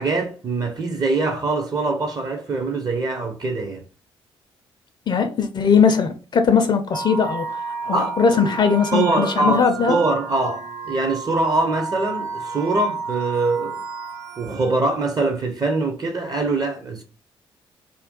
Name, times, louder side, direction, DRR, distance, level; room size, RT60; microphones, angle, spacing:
voice 1, 0.0-3.8 7.9-8.2 8.4-8.6 8.9-13.8 14.4-17.0, right 3 dB, 30° right, 0.5 m, -23 dB
voice 2, 5.1-7.5 7.8-10.0, left 6 dB, 35° left, 0.4 m, -19 dB
sound 1, 6.9-14.9, right 4 dB, 80° right, 0.7 m, -32 dB
2.5 x 2.2 x 3.6 m
figure-of-eight pair, 40°, 13 cm